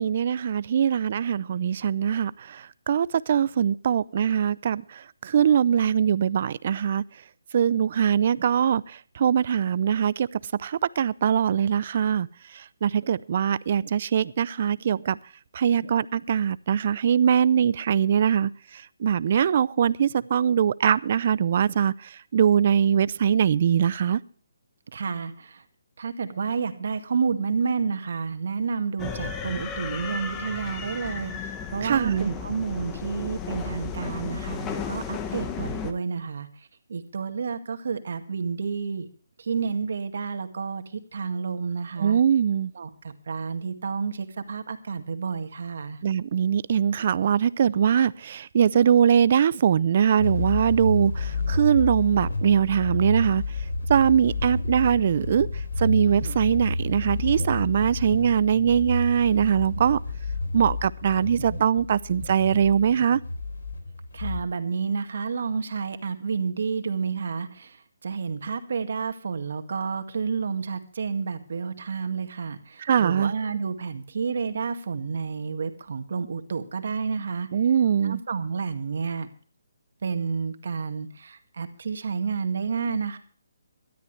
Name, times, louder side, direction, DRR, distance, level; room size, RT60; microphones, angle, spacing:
voice 1, 0.0-2.6 2.9-4.8 5.2-7.0 7.5-8.8 9.2-10.3 10.6-12.3 12.8-15.2 15.5-18.5 19.0-21.9 22.3-24.2 31.8-32.3 42.0-42.7 46.0-53.4 53.9-55.5 55.8-60.0 60.5-63.2 72.8-73.3 77.5-78.2, right 8 dB, 45° right, 0.6 m, -22 dB
voice 2, 24.9-25.6 26.0-36.5 36.9-39.1 39.4-42.2 42.7-46.0 64.1-77.5 78.0-79.3 80.0-83.2, right 5 dB, 60° right, 2.0 m, -30 dB
sound 1, 29.0-35.9, left 6 dB, 15° left, 1.2 m, -34 dB
sound 2, 50.2-64.4, left 3 dB, 85° left, 3.9 m, -30 dB
18.5 x 13.0 x 3.3 m
hypercardioid pair, 160°, 0 cm